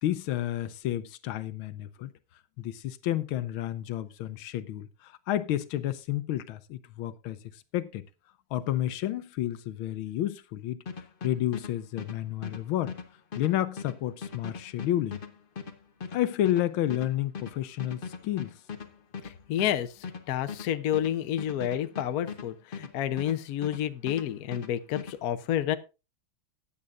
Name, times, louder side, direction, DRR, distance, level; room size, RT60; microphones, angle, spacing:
voice 1, 0.0-2.1 2.6-7.4 7.7-8.0 8.5-10.8 11.2-13.0 13.4-15.2 16.1-18.5, left 13 dB, 85° left, 1.5 m, -30 dB
sound 1, 10.9-23.8 24.1-25.2, left 5 dB, 40° left, 0.8 m, -40 dB
voice 2, 19.2-25.8, left 11 dB, 60° left, 1.0 m, -30 dB
15.5 x 9.8 x 2.5 m
omnidirectional pair, 2.2 m